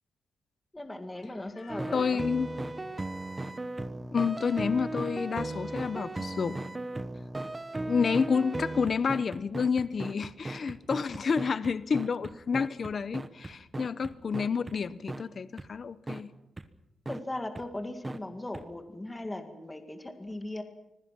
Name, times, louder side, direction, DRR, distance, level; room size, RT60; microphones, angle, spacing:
voice 1, 0.7-2.2 17.1-20.6, left 1 dB, 10° left, 6 dB, 2.0 m, -38 dB
sound 1, 1.7-14.8 15.1-15.2 15.6-15.7 16.1-16.2 16.6-16.7 17.1-17.2 17.6-17.7 18.0-18.2 18.5-18.6, right 2 dB, 15° right, 1.2 m, -36 dB
voice 2, 1.9-2.5 4.1-6.6 7.9-16.3, left 5 dB, 35° left, 15 dB, 0.8 m, -29 dB
26.0 x 21.5 x 6.0 m, 0.89 s
wide cardioid pair, 175°, 0 cm